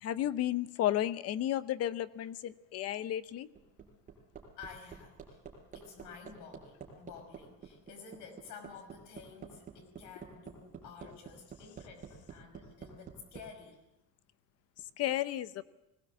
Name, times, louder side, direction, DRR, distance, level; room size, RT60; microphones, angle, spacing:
voice 1, 0.0-3.5 15.0-15.6, left 12 dB, 55° left, 14 dB, 0.7 m, -33 dB
Hammer, 3.3-13.4 14.8-14.9, right 7 dB, 25° right, 4.5 m, -48 dB
voice 2, 4.6-5.4 5.7-13.8, left 5 dB, 80° left, 4 dB, 5.4 m, -51 dB
20.5 x 19.0 x 7.3 m, 0.94 s
cardioid pair, 175°, 30 cm